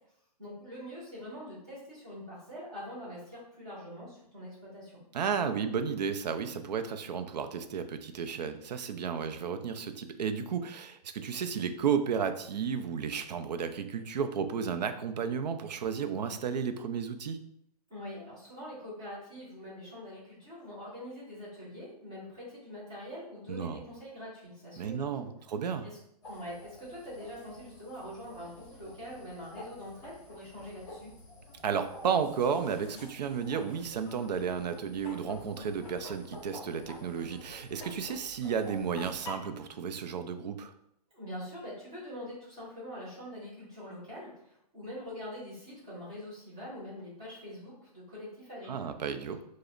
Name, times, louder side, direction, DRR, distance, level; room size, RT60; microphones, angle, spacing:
voice 1, 0.4-5.0 17.9-25.3 25.8-26.0 26.3-31.1 41.1-48.9, equal, 5° right, -9 dB, 0.3 m, -44 dB
voice 2, 5.1-17.4 23.5-23.8 24.8-25.9 31.6-40.7 48.7-49.4, right 6 dB, 90° right, 9 dB, 0.5 m, -33 dB
sound 1, 26.2-39.3, left 1 dB, 10° left, 0.7 m, -49 dB
4.9 x 2.0 x 2.4 m, 0.75 s
hypercardioid pair, 180°, 21 cm